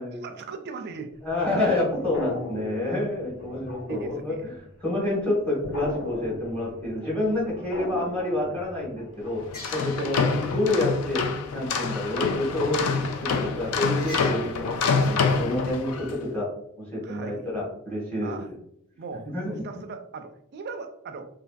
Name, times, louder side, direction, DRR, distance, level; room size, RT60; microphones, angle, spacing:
voice 1, 0.1-1.2 3.9-4.5 10.0-10.2 12.7-12.9 17.0-17.5 18.2-18.5 19.0-19.3 19.6-21.3, right 4 dB, 50° right, 8 dB, 0.3 m, -38 dB
sound 1, 1.2-1.8 2.1-5.0 5.4-10.9 14.0-14.3, left 1 dB, 65° left, 1.5 m, -39 dB
voice 2, 1.2-4.5 4.8-9.4 9.7-10.2 10.5-11.2 11.5-12.9 13.2-16.5 16.8-18.5 19.2-19.6, left 1 dB, 5° left, -5 dB, 0.9 m, -28 dB
sound 2, 9.5-16.2, left 5 dB, 85° left, 0.3 m, -26 dB
2.7 x 2.5 x 2.2 m, 0.73 s
head